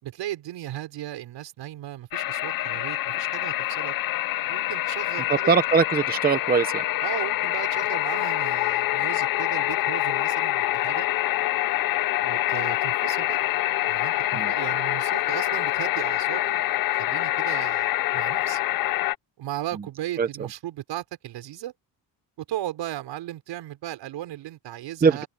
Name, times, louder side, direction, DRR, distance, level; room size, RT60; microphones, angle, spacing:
voice 1, 0.0-3.9 4.5-5.5 7.0-11.1 12.2-13.4 13.9-16.7 17.0-18.6 19.4-21.7 22.4-25.3, right 13 dB, 70° right, 5.7 m, -36 dB
sound 1, 2.1-19.1, left 15 dB, 50° left, 0.5 m, -26 dB
voice 2, 5.3-6.8 14.3-14.5 20.2-20.3 25.0-25.2, right 5 dB, 20° right, 0.7 m, -21 dB
cardioid pair, 165°, 44 cm